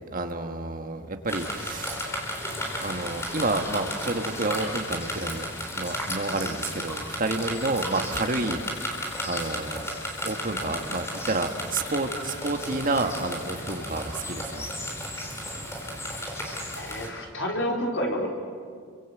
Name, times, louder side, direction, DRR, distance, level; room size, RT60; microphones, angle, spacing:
voice 1, 0.1-2.1 2.8-5.5 5.7-8.6 9.2-9.9 10.2-14.7, right 2 dB, 40° right, 6 dB, 1.6 m, -29 dB
sound 1, 1.3-17.1, equal, 15° left, 4.1 m, -34 dB
voice 2, 16.7-18.3, equal, 60° left, 0 dB, 4.4 m, -29 dB
29.0 x 24.0 x 8.1 m, 2.1 s
head